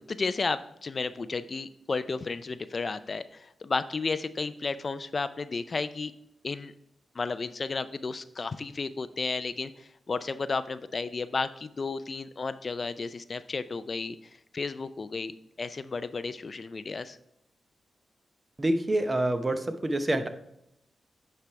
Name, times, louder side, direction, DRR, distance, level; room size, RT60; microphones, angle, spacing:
voice 1, 0.0-6.1 6.4-6.7 7.2-14.2 14.5-15.3 15.6-17.2, left 4 dB, 50° left, 13 dB, 0.3 m, -33 dB
voice 2, 18.6-20.3, right 1 dB, 30° right, 8 dB, 0.7 m, -27 dB
8.3 x 3.4 x 4.5 m, 0.79 s
cardioid pair, 60°, 0 cm